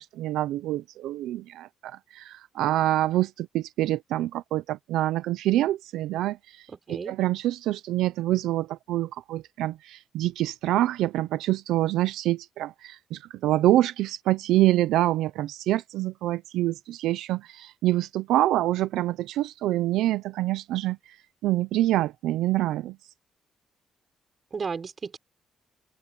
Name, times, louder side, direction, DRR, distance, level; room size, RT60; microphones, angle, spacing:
voice 1, 0.0-21.2 21.4-23.0, right 15 dB, 90° right, 0.6 m, -26 dB
voice 2, 6.7-7.1 24.5-25.2, right 5 dB, 40° right, 5.7 m, -34 dB
open air
cardioid pair, 90°, 0 cm